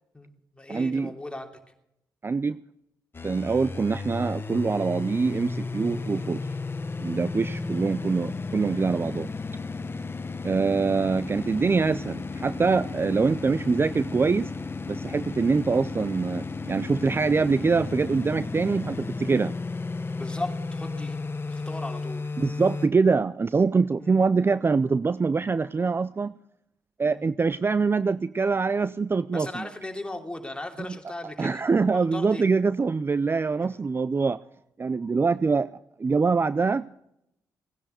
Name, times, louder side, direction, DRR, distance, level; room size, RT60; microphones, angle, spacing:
voice 1, 0.1-1.5 9.0-9.2 20.1-21.2 21.5-22.2 24.0-24.2 27.1-27.3 29.3-31.6 31.9-32.5 33.6-33.7, left 2 dB, 15° left, 3 dB, 3.1 m, -37 dB
voice 2, 0.7-1.1 2.2-2.6 3.2-6.4 7.0-9.3 10.4-14.5 14.9-19.5 22.4-26.3 27.0-29.7 31.4-34.4 34.8-35.7 36.0-36.9, right 4 dB, 30° right, 16 dB, 0.5 m, -24 dB
sound 1, 3.1-22.9, left 3 dB, 30° left, 1.2 m, -34 dB
18.5 x 10.0 x 6.6 m, 0.79 s
cardioid pair, 65°, 8 cm